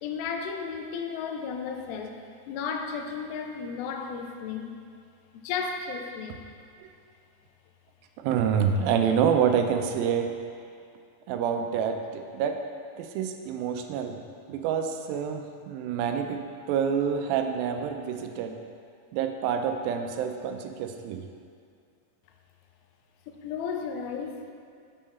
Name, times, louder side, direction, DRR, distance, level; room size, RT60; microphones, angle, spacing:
voice 1, 0.0-4.7 5.3-6.4 23.3-24.5, left 6 dB, 90° left, 4 dB, 2.5 m, -34 dB
voice 2, 8.2-10.3 11.3-12.6 13.0-14.2 14.5-18.6 19.1-21.2, right 7 dB, 90° right, 5 dB, 2.4 m, -27 dB
7.4 x 6.6 x 4.2 m, 2.3 s
omnidirectional pair, 4.2 m